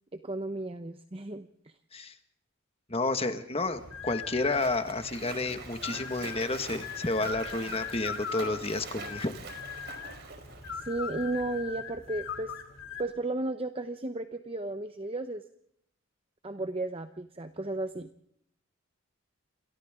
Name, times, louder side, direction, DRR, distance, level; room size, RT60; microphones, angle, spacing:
voice 1, 0.1-1.7 10.7-12.5 13.0-15.4 16.4-18.1, right 2 dB, 30° right, 8 dB, 0.9 m, -34 dB
voice 2, 2.9-9.3, left 2 dB, 30° left, 7 dB, 1.8 m, -31 dB
Splash splatter, 3.6-11.5, right 4 dB, 50° right, 4.5 m, -45 dB
sound 1, 3.7-13.0, left 6 dB, 65° left, 3.0 m, -41 dB
28.5 x 27.0 x 3.8 m, 0.71 s
head